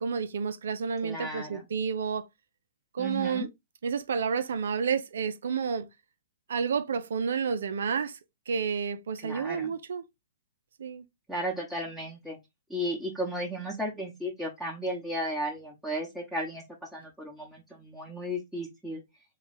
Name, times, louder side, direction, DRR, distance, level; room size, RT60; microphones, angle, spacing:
voice 1, 0.0-2.3 2.9-3.5 3.8-5.9 6.5-8.2 8.5-10.0 10.8-11.0, right 6 dB, 70° right, 0.5 m, -30 dB
voice 2, 1.0-1.6 3.0-3.5 9.2-9.7 11.3-12.4 12.7-16.6 16.9-19.0, equal, 5° right, 1.1 m, -34 dB
3.2 x 2.4 x 4.0 m
hypercardioid pair, 125°, 0 cm